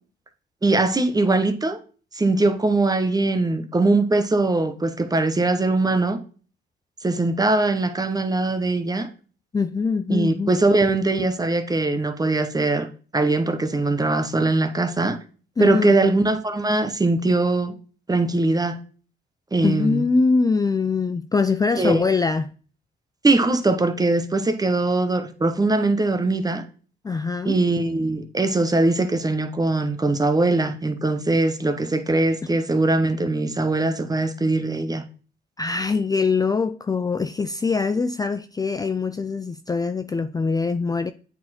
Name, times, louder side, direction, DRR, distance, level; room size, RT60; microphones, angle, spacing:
voice 1, 0.6-1.8 2.1-6.2 7.0-9.1 10.1-12.9 13.1-15.2 15.6-17.7 18.1-18.8 19.5-20.1 21.8-22.0 23.2-26.6 27.4-35.0, right 2 dB, 20° right, 1.0 m, -21 dB
voice 2, 9.5-10.5 15.6-16.1 19.6-22.5 27.0-27.6 35.6-41.1, left 4 dB, 20° left, 0.4 m, -23 dB
8.5 x 4.4 x 4.2 m
cardioid pair, 90°, 20 cm